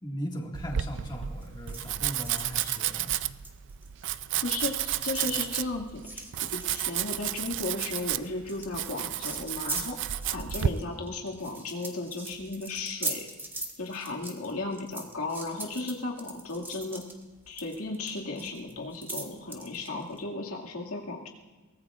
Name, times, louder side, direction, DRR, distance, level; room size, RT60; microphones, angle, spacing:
voice 1, 0.0-3.1, equal, 20° left, 0 dB, 1.9 m, -38 dB
Domestic sounds home sounds, 0.5-10.7, right 11 dB, 60° right, 0.4 m, -32 dB
sound 1, 1.4-4.2 4.4-20.2, right 2 dB, 10° right, 1.5 m, -41 dB
voice 2, 4.4-6.3 6.5-13.3 13.8-17.0 17.5-21.3, left 3 dB, 85° left, -1 dB, 2.1 m, -35 dB
23.0 x 18.0 x 2.5 m, 1.3 s
head